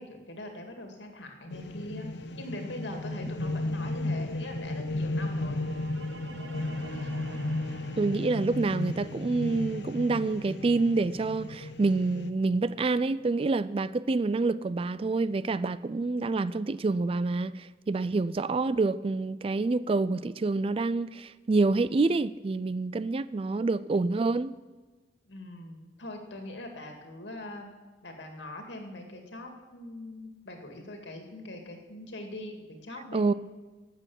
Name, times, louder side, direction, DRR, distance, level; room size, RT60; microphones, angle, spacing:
voice 1, 0.0-5.6 6.9-7.1 25.2-27.7 28.0-33.3, left 1 dB, 85° left, 2.4 m, -42 dB
sound 1, 1.5-12.3, left 2 dB, 70° left, 0.8 m, -34 dB
sound 2, 5.1-13.2, right 2 dB, 75° right, 1.4 m, -49 dB
voice 2, 8.0-24.6 33.1-33.3, right 3 dB, 30° right, 0.3 m, -27 dB
12.5 x 8.4 x 7.2 m
head